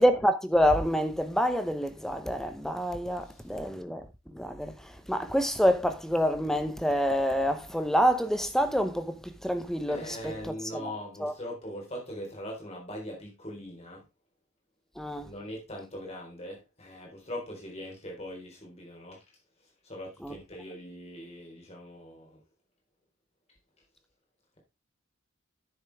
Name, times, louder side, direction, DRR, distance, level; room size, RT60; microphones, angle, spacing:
voice 1, 0.0-10.9 11.2-11.3 15.0-15.3 20.2-20.3, equal, ahead, 0.8 m, -27 dB
voice 2, 9.9-14.0 15.2-19.2 19.8-22.4, equal, 30° left, 4.0 m, -41 dB
9.8 x 7.2 x 3.5 m
head